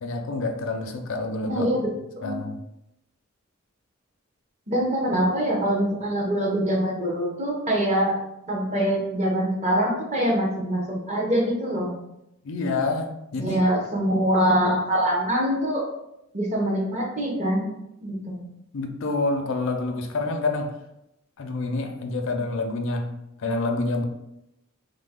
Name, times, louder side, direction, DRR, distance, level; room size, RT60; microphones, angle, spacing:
voice 1, 0.0-1.7 2.2-2.6 12.4-13.6 18.7-20.8 21.4-24.0, left 3 dB, 65° left, 5 dB, 0.4 m, -27 dB
voice 2, 1.5-1.9 2.2-2.4 4.7-8.2 8.5-11.9 13.4-15.9 16.3-17.7 18.0-18.4, equal, 35° right, -1 dB, 0.7 m, -24 dB
3.2 x 2.0 x 3.5 m, 0.85 s
head